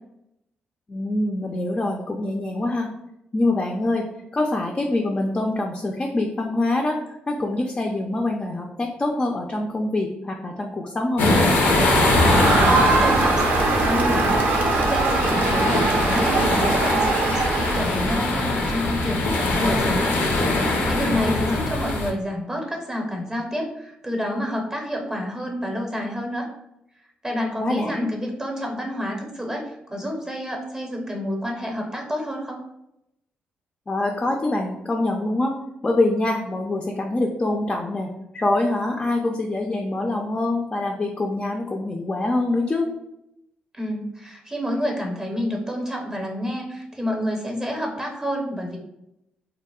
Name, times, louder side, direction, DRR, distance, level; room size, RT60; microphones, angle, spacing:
voice 1, 0.9-2.9 3.3-4.0 4.3-7.0 7.3-11.7 21.2-21.6 27.6-28.1 33.9-35.5 35.8-42.9, left 2 dB, 30° left, 1 dB, 0.3 m, -25 dB
sound 1, 11.2-22.1, left 2 dB, 85° left, 0.5 m, -22 dB
Crowd, 11.4-18.2, right 3 dB, 65° right, 0.4 m, -22 dB
voice 2, 12.6-20.2 20.5-26.5 27.2-32.6 43.7-48.8, equal, 15° right, 0 dB, 0.6 m, -29 dB
2.7 x 2.0 x 2.3 m, 0.84 s
cardioid pair, 70°, 3 cm